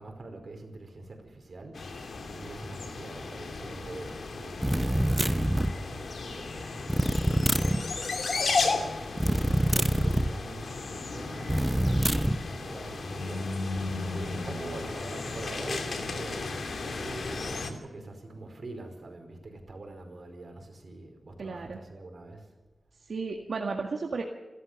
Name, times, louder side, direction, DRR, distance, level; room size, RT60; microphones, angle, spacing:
voice 1, 0.0-6.9 7.2-8.0 8.7-16.7 16.9-22.4, right 2 dB, 50° right, 4 dB, 4.9 m, -44 dB
sound 1, 1.7-17.7, left 3 dB, 70° left, 2.7 m, -34 dB
sound 2, 4.6-5.8 6.9-7.8 9.2-10.3 11.5-12.4, right 1 dB, 10° right, 0.8 m, -25 dB
voice 2, 21.4-21.8 23.0-24.2, right 4 dB, 70° right, 2 dB, 1.9 m, -33 dB
28.5 x 13.5 x 6.9 m, 1.2 s
wide cardioid pair, 135°, 0 cm